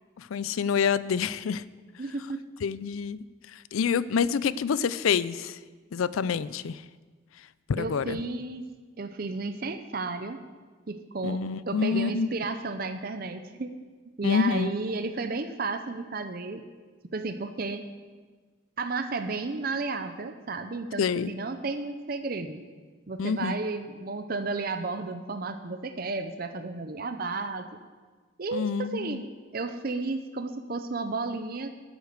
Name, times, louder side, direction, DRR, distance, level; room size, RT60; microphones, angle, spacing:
voice 1, 0.2-1.6 2.6-3.3 3.5-5.6 5.9-6.8 7.7-8.2 11.2-12.3 14.2-14.7 21.0-21.3 23.2-23.6 28.5-29.2, left 6 dB, 85° left, 18 dB, 0.4 m, -27 dB
voice 2, 2.0-2.4 7.8-8.7 9.0-10.4 10.9-13.7 14.2-16.6 17.1-17.8 18.8-22.6 23.1-27.7 28.4-29.3 29.5-31.8, right 3 dB, 45° right, 8 dB, 0.6 m, -33 dB
11.5 x 8.1 x 6.6 m, 1.4 s
head